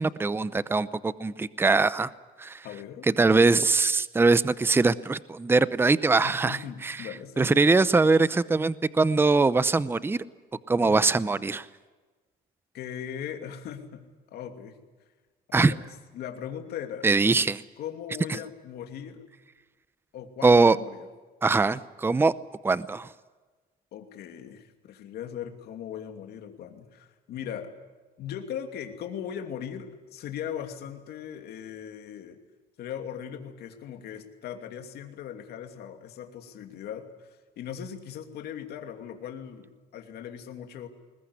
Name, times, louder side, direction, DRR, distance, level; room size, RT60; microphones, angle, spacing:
voice 1, 0.0-2.1 2.4-2.6 3.1-7.0 7.4-10.2 10.7-11.7 15.5-15.7 17.0-17.6 20.4-20.8 21.4-22.3 22.6-23.1, right 3 dB, 15° right, 16 dB, 0.7 m, -22 dB
voice 2, 2.6-3.1 6.2-7.6 10.8-11.0 12.7-14.8 15.5-15.8 16.1-17.1 17.8-19.2 20.1-21.1 23.9-27.7 28.2-32.4 32.8-37.3 37.6-40.9, left 9 dB, 70° left, 5 dB, 2.8 m, -39 dB
21.0 x 20.5 x 9.8 m, 1.3 s
cardioid pair, 110°, 17 cm